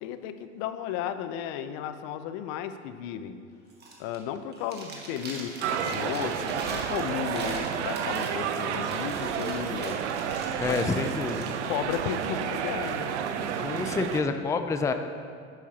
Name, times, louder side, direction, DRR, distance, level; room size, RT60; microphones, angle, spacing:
voice 1, 0.0-3.4 4.0-10.1 10.6-10.8 11.6-13.2, left 9 dB, 60° left, 11 dB, 0.6 m, -34 dB
Chewing mastication, 3.7-4.2 4.5-11.5, right 2 dB, 30° right, 1.7 m, -42 dB
sound 1, 5.6-14.2, right 7 dB, 85° right, 0.6 m, -31 dB
voice 2, 10.6-11.5 13.6-14.9, left 4 dB, 10° left, 7 dB, 0.4 m, -28 dB
11.5 x 7.3 x 2.8 m, 2.2 s
hypercardioid pair, 90°, 34 cm